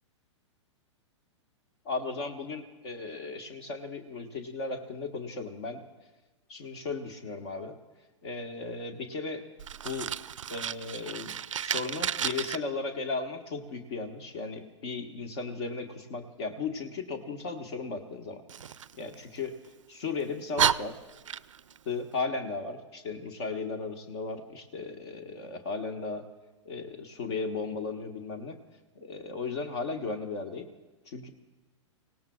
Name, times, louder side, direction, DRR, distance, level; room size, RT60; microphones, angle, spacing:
voice 1, 1.8-5.8 6.5-7.8 8.2-9.4 9.8-10.1 10.5-11.3 11.6-18.4 19.0-19.5 19.9-21.0 21.8-26.3 26.6-28.6 29.0-30.7 31.1-31.3, left 4 dB, 55° left, 5 dB, 1.5 m, -36 dB
Fire, 9.6-12.6 18.5-19.7 20.2-20.3 20.6-21.8, right 8 dB, 80° right, 0.4 m, -32 dB
29.0 x 17.5 x 2.4 m, 1.2 s
hypercardioid pair, 110°, 16 cm